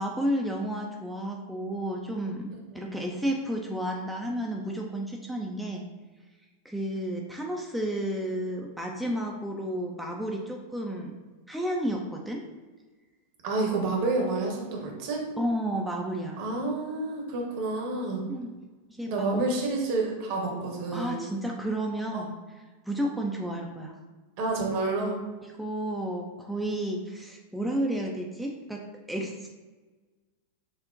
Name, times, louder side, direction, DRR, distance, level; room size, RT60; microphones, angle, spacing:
voice 1, 0.0-2.5 2.7-5.9 6.6-11.2 11.5-12.5 15.4-16.4 18.3-18.5 18.9-19.4 20.9-22.4 22.9-24.0 25.6-29.5, right 1 dB, ahead, -1 dB, 0.3 m, -32 dB
voice 2, 13.4-15.2 16.4-18.2 19.1-21.2 22.1-22.2 24.4-25.2, right 3 dB, 50° right, 0 dB, 0.9 m, -29 dB
6.0 x 2.1 x 2.5 m, 1.3 s
figure-of-eight pair, 90°, 0 cm